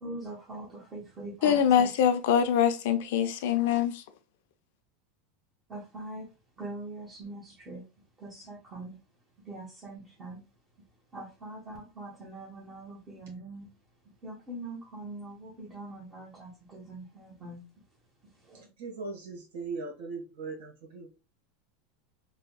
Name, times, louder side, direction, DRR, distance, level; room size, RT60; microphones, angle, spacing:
voice 1, 0.0-1.9 5.7-6.3 6.6-7.8 8.2-9.0 9.4-10.4 11.1-13.7 14.2-17.6 18.2-18.7, right 2 dB, 25° right, 1.2 m, -42 dB
voice 2, 1.4-3.9, left 8 dB, 75° left, 0.6 m, -24 dB
voice 3, 18.8-21.1, right 4 dB, 80° right, 1.6 m, -39 dB
4.1 x 2.3 x 2.3 m
supercardioid pair, 140°, 0 cm